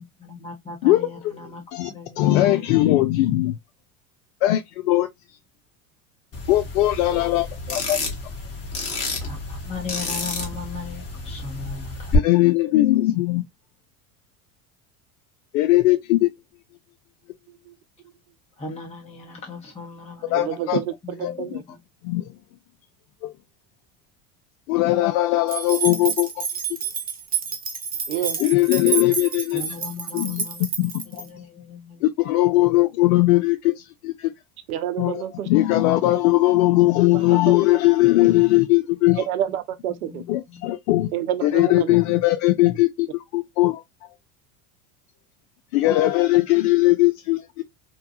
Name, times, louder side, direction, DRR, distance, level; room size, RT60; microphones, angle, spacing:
voice 1, 0.0-1.6 1.9-3.0 6.9-7.0 9.2-12.1 18.6-20.7 21.0-21.8 29.5-30.7 31.2-32.1 40.0-40.7, left 4 dB, 15° left, 0.9 m, -38 dB
voice 2, 2.2-3.6 4.4-5.1 6.5-8.0 12.1-13.4 15.5-16.3 20.3-20.8 21.2-21.3 22.0-22.2 23.2-23.3 24.7-26.4 28.4-29.6 30.1-30.4 30.8-31.2 32.0-33.7 34.0-34.3 35.0-39.2 40.3-41.1 41.4-43.8 45.7-47.6, left 17 dB, 70° left, 0.5 m, -19 dB
sound 1, 6.3-12.2, left 3 dB, 35° left, 1.2 m, -30 dB
voice 3, 20.3-21.6 28.1-28.4 34.7-35.5 37.1-37.5 39.1-40.2 41.1-42.0, right 11 dB, 80° right, 0.7 m, -29 dB
sound 2, 25.5-31.2, right 6 dB, 20° right, 0.7 m, -29 dB
2.9 x 2.2 x 2.6 m
hypercardioid pair, 85°, 43 cm